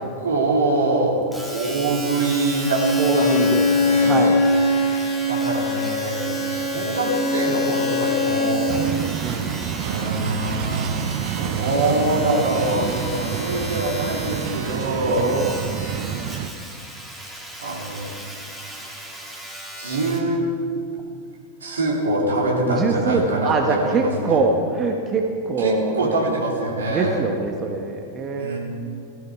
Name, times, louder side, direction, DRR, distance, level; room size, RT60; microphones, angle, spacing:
voice 1, 0.2-1.2 1.5-2.8 3.1-4.2 4.9-8.8 9.8-15.4 17.6-18.1 19.8-20.4 21.6-24.4 25.6-27.2 28.4-28.6, right 2 dB, 70° right, -3 dB, 3.7 m, -24 dB
Domestic sounds home sounds, 1.3-20.3 21.0-21.1, equal, 5° right, 2.5 m, -36 dB
Bowed string instrument, 2.6-8.7, left 2 dB, 50° left, 2.9 m, -22 dB
voice 2, 3.0-3.7 4.0-4.4 9.2-9.5 15.0-15.5 22.7-26.2 26.9-28.6, right 4 dB, 25° right, 2 dB, 1.4 m, -23 dB
sound 1, 8.7-16.5, right 9 dB, 40° right, 0.7 m, -28 dB
17.0 x 15.0 x 4.8 m, 2.4 s
figure-of-eight pair, 90°, 0 cm